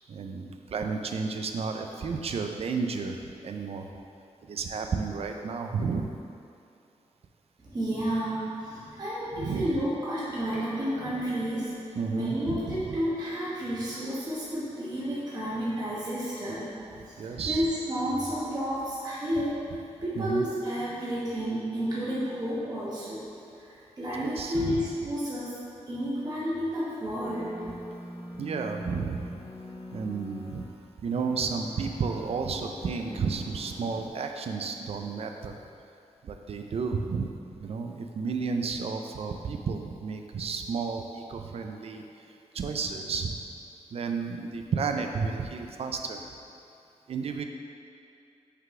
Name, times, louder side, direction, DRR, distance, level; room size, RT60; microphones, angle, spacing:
voice 1, 0.1-3.9 4.4-6.1 9.4-9.8 12.0-13.0 17.2-17.7 20.2-20.5 24.2-24.8 28.4-29.3 29.9-30.6 31.0-35.6 36.2-37.3 37.6-42.0 42.5-43.4 43.9-46.3 47.1-47.4, right 5 dB, 55° right, 4 dB, 0.4 m, -32 dB
voice 2, 7.6-16.7 17.0-19.7 20.0-23.3 23.6-25.6 25.9-27.6, equal, 35° right, -9 dB, 1.1 m, -31 dB
sound 1, 27.2-30.7 31.1-34.1, left 1 dB, 45° left, 0.8 m, -43 dB
5.6 x 3.9 x 4.7 m, 2.6 s
wide cardioid pair, 120°, 12 cm